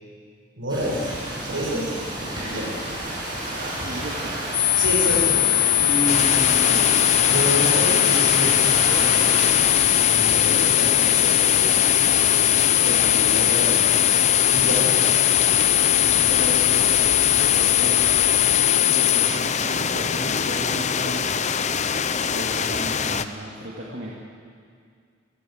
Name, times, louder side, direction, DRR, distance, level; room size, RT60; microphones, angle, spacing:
voice 1, 0.6-1.2 1.4-2.0 2.4-2.7 3.9-4.0 4.8-5.4 5.7-6.8 7.3-11.7 12.8-14.0 14.5-15.0, equal, 80° right, -2 dB, 6.9 m, -29 dB
sound 1, 0.7-18.4, right 1 dB, 25° right, 7.3 m, -31 dB
voice 2, 3.5-4.4 16.1-18.5 18.9-21.3 22.3-24.1, right 1 dB, 60° right, -4 dB, 2.7 m, -35 dB
sound 2, 4.5-19.3, left 24 dB, 90° left, 1.8 m, -20 dB
sound 3, 6.1-23.3, left 6 dB, 35° left, 0.7 m, -25 dB
26.5 x 16.5 x 8.1 m, 2.2 s
head